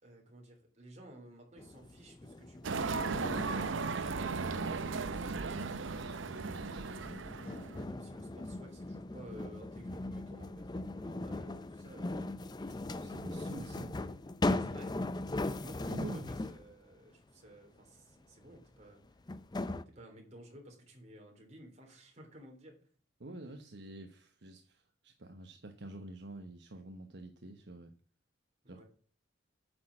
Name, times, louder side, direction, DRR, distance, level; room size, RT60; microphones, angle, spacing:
voice 1, 0.0-4.7 7.8-12.3 14.6-15.0 15.6-19.0 19.9-22.9 28.6-28.8, right 1 dB, 35° right, 1 dB, 3.5 m, -54 dB
sound 1, 1.6-16.7 18.5-18.6 19.3-19.8, left 2 dB, 20° left, 0.5 m, -39 dB
sound 2, 2.6-7.8, right 4 dB, 80° right, 0.7 m, -36 dB
voice 2, 5.5-6.2 6.5-7.0 12.7-14.0 15.8-16.3 23.2-27.9 28.7-28.8, right 2 dB, 60° right, 5 dB, 1.1 m, -48 dB
9.4 x 6.3 x 7.4 m, 0.43 s
head